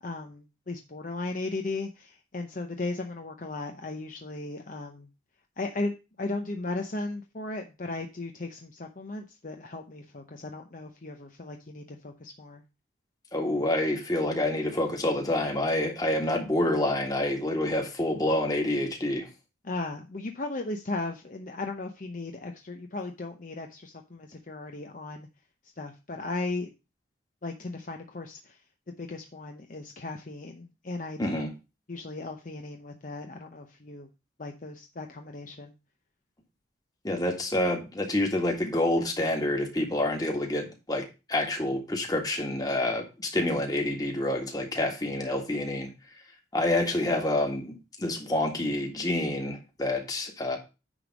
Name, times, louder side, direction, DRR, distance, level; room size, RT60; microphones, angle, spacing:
voice 1, 0.0-5.1 5.6-12.6 19.6-25.3 25.8-26.7 27.4-28.6 29.0-31.5 31.9-34.1 34.4-35.7, left 2 dB, 45° left, 0.7 m, -36 dB
voice 2, 13.3-19.3 31.2-31.5 37.0-45.9 46.5-50.6, left 1 dB, 20° left, 1.8 m, -28 dB
9.9 x 3.5 x 6.0 m
head